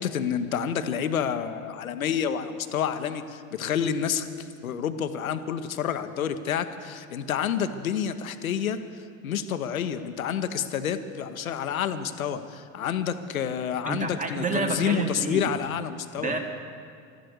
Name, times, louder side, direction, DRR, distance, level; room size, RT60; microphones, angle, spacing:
voice 1, 0.0-8.8 9.2-16.3, left 8 dB, 80° left, 10 dB, 0.8 m, -29 dB
voice 2, 13.9-15.4 16.2-16.4, right 4 dB, 20° right, 4 dB, 1.9 m, -28 dB
13.0 x 12.0 x 7.9 m, 2.2 s
figure-of-eight pair, 70°, 41 cm